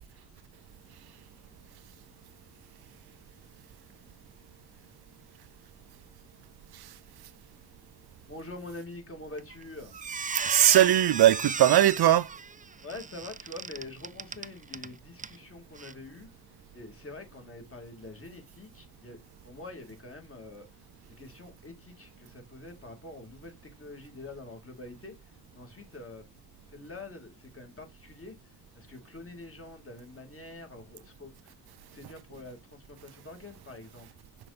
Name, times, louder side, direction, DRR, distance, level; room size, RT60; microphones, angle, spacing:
voice 1, 8.2-10.0 12.8-16.3 16.7-19.2 19.4-20.9 21.2-26.3 26.7-31.5 31.9-34.1, left 2 dB, 35° left, 2.7 m, -45 dB
Squeak, 9.4-9.6 9.9-14.9 15.2-15.4 15.8-15.9, right 5 dB, 20° right, 0.4 m, -34 dB
voice 2, 10.5-12.3, right 13 dB, 70° right, 0.5 m, -20 dB
5.9 x 4.0 x 5.1 m
cardioid pair, 70°, 40 cm